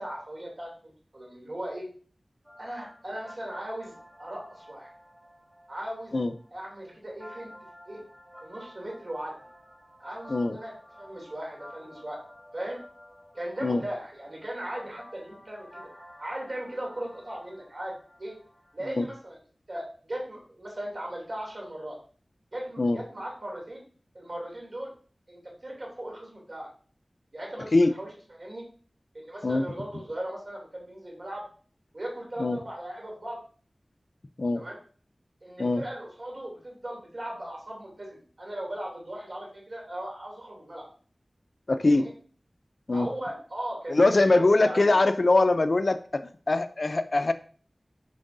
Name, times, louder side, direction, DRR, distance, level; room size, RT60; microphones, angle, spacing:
voice 1, 0.0-1.9 2.6-3.9 4.2-4.9 5.7-6.2 6.5-7.5 7.9-8.0 8.4-9.4 10.0-10.7 11.0-12.2 12.5-12.8 13.3-15.9 16.2-18.3 18.7-19.4 19.7-22.0 22.5-23.8 24.1-24.9 25.3-26.7 27.3-27.7 28.0-28.1 28.4-28.6 29.1-31.4 31.9-33.4 34.5-34.8 35.4-40.9 41.8-42.1 42.9-44.9, right 1 dB, 60° right, -2 dB, 2.7 m, -38 dB
sound 1, 2.4-18.8, equal, 5° right, 2.2 m, -51 dB
voice 2, 41.7-42.1 42.9-43.1 43.9-47.3, left 2 dB, 65° left, 11 dB, 0.4 m, -22 dB
7.3 x 5.4 x 2.6 m, 0.42 s
wide cardioid pair, 45°, 0 cm